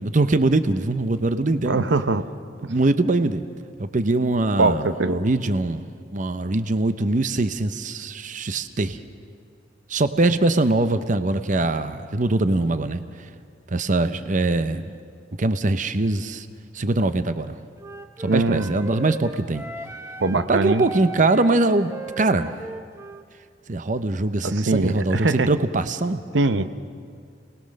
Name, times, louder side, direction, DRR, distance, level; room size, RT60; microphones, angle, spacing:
voice 1, 0.0-1.8 2.6-3.4 3.8-5.8 6.1-9.0 9.9-13.3 13.7-14.9 15.4-16.5 16.7-17.6 18.2-19.6 20.5-22.6 23.7-26.2, right 2 dB, 45° right, 11 dB, 0.7 m, -22 dB
voice 2, 1.6-2.2 4.6-5.2 18.3-18.7 20.2-20.9 24.4-25.5 26.3-26.7, right 3 dB, 80° right, 11 dB, 0.8 m, -22 dB
Wind instrument woodwind instrument, 17.8-23.3, right 2 dB, 15° right, 0.9 m, -38 dB
28.5 x 19.5 x 6.5 m, 2.2 s
head